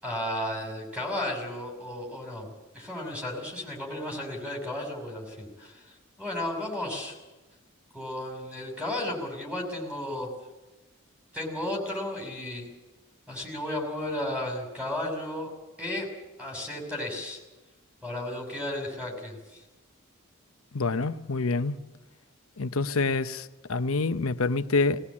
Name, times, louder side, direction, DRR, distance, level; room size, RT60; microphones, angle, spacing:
voice 1, 0.0-5.8 6.2-7.2 7.9-10.3 11.3-12.7 13.3-15.5 15.8-16.1 16.4-17.4 18.0-19.6, left 1 dB, 5° right, 6.2 m, -34 dB
voice 2, 20.7-21.8 22.6-25.0, left 3 dB, 75° left, 0.9 m, -27 dB
20.0 x 19.5 x 8.6 m
head